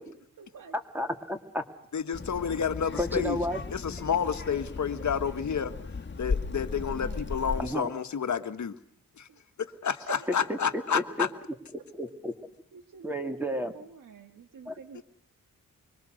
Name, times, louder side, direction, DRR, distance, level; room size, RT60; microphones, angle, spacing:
voice 1, 0.4-0.8 2.2-2.8 6.7-7.4 9.3-9.4 10.0-10.3 12.7-15.0, right 6 dB, 75° right, 6 dB, 1.9 m, -47 dB
voice 2, 0.9-1.6 3.0-3.6 7.6-7.9 10.5-11.3 12.0-12.3 13.0-13.7 14.7-14.8, left 1 dB, 5° right, 5 dB, 2.8 m, -31 dB
voice 3, 1.9-3.4 3.7-5.7 6.2-8.7 9.2-9.3 9.8-11.3 14.9-15.0, left 7 dB, 60° left, 8 dB, 1.7 m, -30 dB
Child speech kid speaking, 2.1-7.7, left 4 dB, 35° left, 2.0 m, -36 dB
25.0 x 23.0 x 6.6 m, 0.62 s
cardioid pair, 85°, 32 cm